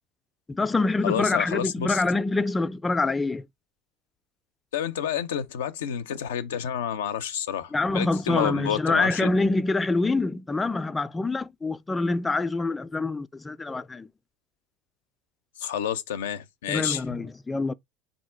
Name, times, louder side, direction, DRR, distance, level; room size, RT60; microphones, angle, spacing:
voice 1, 0.5-3.4 7.7-14.1 16.7-17.7, left 3 dB, 15° left, 0.3 m, -25 dB
voice 2, 1.0-2.0 4.7-9.3 15.6-17.0, left 9 dB, 85° left, 0.4 m, -29 dB
3.6 x 2.6 x 4.4 m
hypercardioid pair, 85°, 0 cm